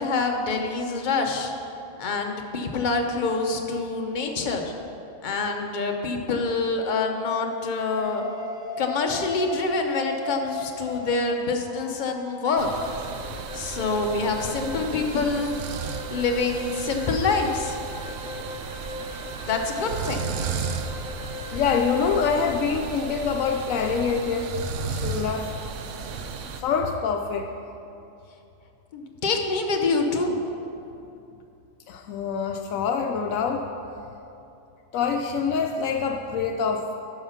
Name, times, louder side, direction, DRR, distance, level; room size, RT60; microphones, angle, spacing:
voice 1, 0.0-1.5 2.0-4.7 5.2-8.2 8.8-12.7 13.5-15.5 16.1-17.8 19.4-20.3 28.9-30.4, left 3 dB, 40° left, 3 dB, 0.9 m, -26 dB
sound 1, 7.9-22.9, left 2 dB, 5° right, 0.7 m, -38 dB
sound 2, 12.6-26.6, right 6 dB, 70° right, 0.9 m, -34 dB
voice 2, 21.5-25.5 26.6-27.5 31.9-33.7 34.9-36.9, left 5 dB, 80° left, 4 dB, 1.0 m, -25 dB
12.5 x 4.9 x 5.7 m, 2.8 s
omnidirectional pair, 1.4 m